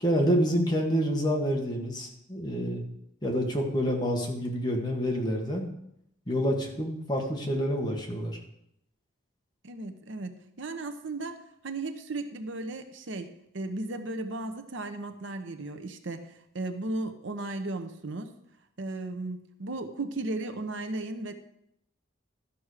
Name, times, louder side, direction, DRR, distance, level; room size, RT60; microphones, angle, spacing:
voice 1, 0.0-2.8 3.2-5.7 6.3-8.4, equal, 20° left, 0 dB, 1.4 m, -28 dB
voice 2, 9.6-13.3 13.5-18.3 18.8-21.3, right 2 dB, 70° right, 8 dB, 0.8 m, -35 dB
13.0 x 6.1 x 4.9 m, 0.76 s
head